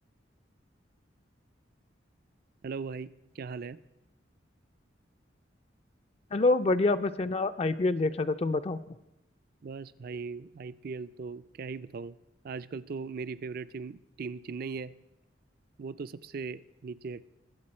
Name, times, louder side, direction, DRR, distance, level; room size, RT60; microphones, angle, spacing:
voice 1, 2.6-3.1 3.4-3.8 9.6-12.1 12.4-14.9 15.8-17.2, right 4 dB, 55° right, 15 dB, 0.4 m, -39 dB
voice 2, 6.3-9.0, left 2 dB, 35° left, 10 dB, 0.4 m, -27 dB
21.5 x 8.3 x 4.3 m, 0.92 s
head